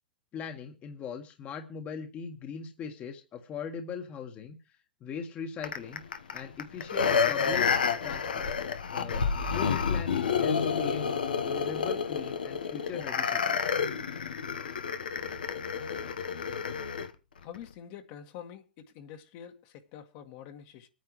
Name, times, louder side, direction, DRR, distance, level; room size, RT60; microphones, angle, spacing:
voice 1, 0.3-6.0 6.3-7.7 8.0-8.5 8.9-11.0 11.4-13.7, left 6 dB, 30° left, 1.6 m, -40 dB
sound 1, 5.6-17.1 17.5-17.6, left 6 dB, 85° left, 1.3 m, -29 dB
voice 2, 17.4-20.9, left 9 dB, 50° left, 1.8 m, -46 dB
25.0 x 9.4 x 3.2 m
hypercardioid pair, 115°, 5 cm